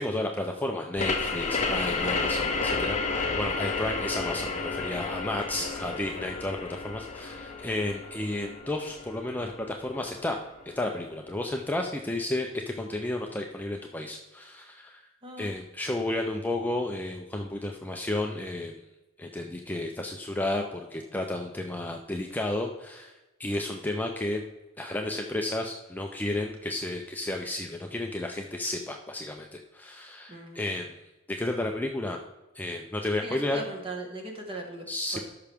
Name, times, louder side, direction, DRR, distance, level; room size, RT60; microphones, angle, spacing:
voice 1, 0.0-10.4 10.8-15.1 15.4-18.8 19.2-24.4 24.8-31.0 31.3-32.2 32.5-33.6 34.9-35.2, left 1 dB, 10° left, 2 dB, 0.5 m, -32 dB
sound 1, 1.0-10.3, left 4 dB, 35° left, 0.9 m, -31 dB
voice 2, 5.5-6.0 15.2-15.5 30.3-30.6 33.2-34.8 35.1-35.2, right 1 dB, 25° right, 1 dB, 1.6 m, -39 dB
13.0 x 5.8 x 3.5 m, 1.1 s
head